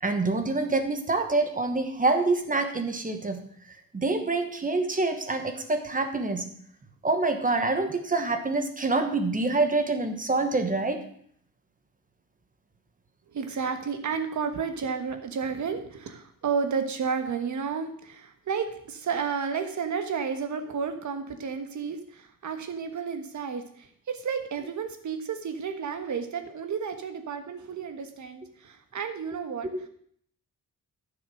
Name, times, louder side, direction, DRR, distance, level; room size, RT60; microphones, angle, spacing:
voice 1, 0.0-3.4 3.9-6.5 7.0-11.0, right 3 dB, 25° right, 6 dB, 1.2 m, -26 dB
voice 2, 13.3-29.7, right 6 dB, 60° right, 7 dB, 1.5 m, -32 dB
12.0 x 7.1 x 6.3 m, 0.62 s
wide cardioid pair, 170°, 33 cm